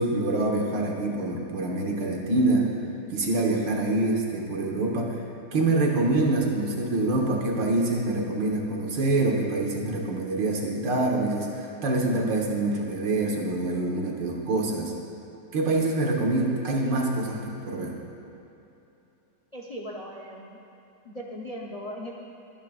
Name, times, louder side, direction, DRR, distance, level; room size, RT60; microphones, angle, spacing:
voice 1, 0.0-2.7 3.1-5.2 5.5-14.9 15.5-17.9, right 2 dB, 85° right, 0 dB, 2.1 m, -25 dB
voice 2, 19.5-20.6 21.0-22.1, equal, 35° left, -1 dB, 0.6 m, -38 dB
23.0 x 10.0 x 2.5 m, 2.9 s
omnidirectional pair, 1.9 m